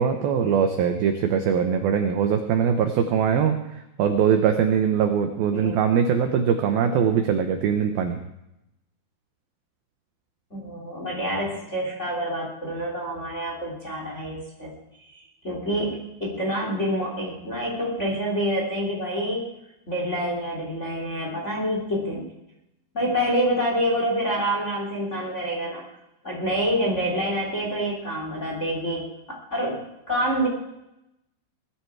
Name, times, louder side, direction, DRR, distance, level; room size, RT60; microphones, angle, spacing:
voice 1, 0.0-8.2, right 7 dB, 75° right, 6 dB, 2.2 m, -22 dB
voice 2, 10.5-14.7 15.1-19.5 19.9-22.3 22.9-25.8 26.2-29.1 29.5-30.5, equal, 20° left, -2 dB, 2.6 m, -27 dB
20.0 x 12.5 x 4.8 m, 0.87 s
omnidirectional pair, 5.4 m